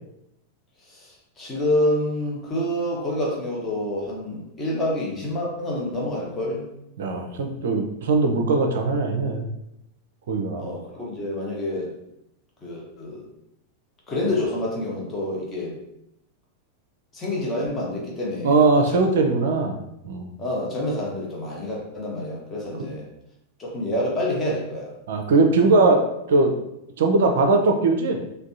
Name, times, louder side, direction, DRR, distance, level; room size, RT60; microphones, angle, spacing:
voice 1, 0.9-6.6 10.6-11.9 12.6-13.3 14.1-15.8 17.1-19.0 19.6-19.7 20.4-23.1 23.6-24.9, left 1 dB, 20° left, -3 dB, 1.0 m, -27 dB
voice 2, 7.0-9.5 10.3-10.6 18.4-19.8 20.0-20.3 25.1-26.0 26.3-26.5 27.0-28.2, right 3 dB, 60° right, 4 dB, 0.4 m, -20 dB
3.4 x 2.2 x 2.7 m, 0.81 s
figure-of-eight pair, 90°, 0 cm